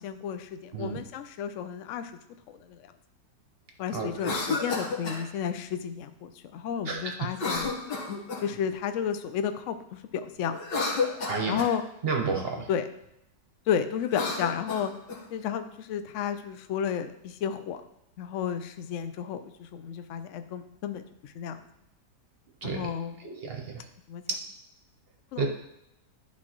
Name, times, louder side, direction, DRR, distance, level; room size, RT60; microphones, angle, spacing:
voice 1, 0.0-2.1 2.5-2.8 3.8-7.7 8.4-9.8 10.1-10.6 11.5-11.8 12.7-12.9 13.7-14.9 15.3-17.8 18.2-19.4 19.7-21.0 21.4-21.6 22.6-23.2 24.1-24.2 25.3-25.5, left 8 dB, 70° left, 9 dB, 0.7 m, -32 dB
voice 2, 3.9-4.3 6.9-7.0 11.3-11.6 12.0-12.6 22.6-22.9 23.2-23.6 25.4-25.5, right 4 dB, 45° right, 2 dB, 0.9 m, -30 dB
Cough, 4.1-5.2 7.3-8.6 10.5-11.8 14.0-15.2, left 4 dB, 90° left, 1.9 m, -31 dB
11.5 x 4.1 x 3.0 m, 0.82 s
omnidirectional pair, 1.8 m